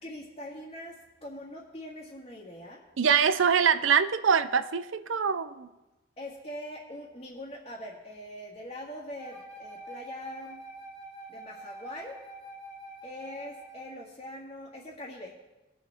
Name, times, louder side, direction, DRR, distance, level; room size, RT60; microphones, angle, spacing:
voice 1, 0.0-2.8 6.2-10.6 11.3-12.2 13.0-15.4, left 1 dB, 30° left, -7 dB, 1.9 m, -42 dB
voice 2, 3.0-5.7, right 6 dB, 90° right, 13 dB, 0.5 m, -24 dB
Wind instrument woodwind instrument, 9.2-14.1, right 1 dB, 20° right, 2.6 m, -45 dB
20.0 x 7.1 x 3.6 m, 1.1 s
head